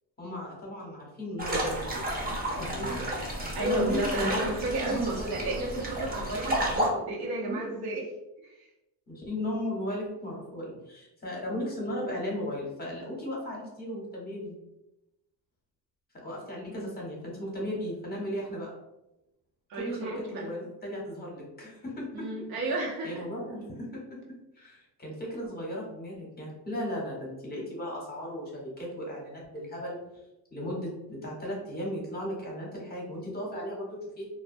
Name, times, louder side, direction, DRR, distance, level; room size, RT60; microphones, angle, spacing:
voice 1, 0.2-2.1 2.6-3.1 3.6-4.5 4.8-5.1 5.7-5.8 7.4-7.7 9.1-14.6 16.1-18.7 19.8-22.5 23.0-30.2 30.5-34.3, equal, 20° left, -3 dB, 0.7 m, -36 dB
sound 1, 1.4-6.9, right 1 dB, 20° right, 0.6 m, -32 dB
voice 2, 3.5-8.1 8.4-8.7 16.7-16.9 19.7-20.5 22.1-23.2, right 2 dB, 90° right, -3 dB, 0.9 m, -32 dB
2.2 x 2.1 x 2.5 m, 0.93 s
cardioid pair, 115°, 44 cm